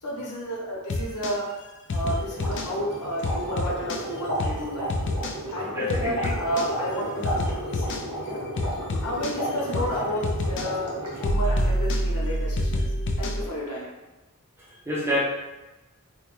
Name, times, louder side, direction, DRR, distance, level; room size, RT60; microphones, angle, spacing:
voice 1, 0.0-1.5 1.9-4.9 5.5-8.3 9.0-12.9 13.2-13.9, equal, 90° left, -4 dB, 0.9 m, -31 dB
sound 1, 0.9-1.4 1.9-2.7 3.2-4.0 4.4-4.6 4.9-5.4 5.9-6.7 7.2-8.0 8.6-9.4 9.7-10.0 10.2-10.7 11.2-13.4, left 1 dB, 55° left, 0.4 m, -27 dB
sound 2, 2.0-11.4, equal, 75° right, 1.0 m, -33 dB
voice 2, 5.7-6.3 14.9-15.2, left 1 dB, 10° right, -5 dB, 0.6 m, -27 dB
3.5 x 2.2 x 3.0 m, 1.1 s
head